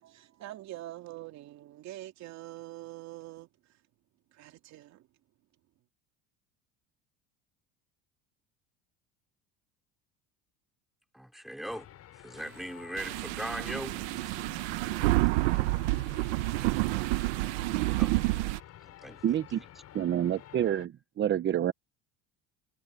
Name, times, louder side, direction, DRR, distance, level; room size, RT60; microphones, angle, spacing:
voice 1, 0.0-3.5 4.3-5.0, right 15 dB, 55° right, 2.8 m, -44 dB
voice 2, 11.1-14.2 18.0-18.3 18.8-19.7, equal, ahead, 4.3 m, -40 dB
sound 1, 11.7-20.9, left 12 dB, 50° left, 5.9 m, -51 dB
sound 2, 13.0-18.6, right 21 dB, 90° right, 1.0 m, -29 dB
voice 3, 19.2-19.6 19.9-21.7, right 10 dB, 35° right, 1.0 m, -28 dB
supercardioid pair, 115°, 33 cm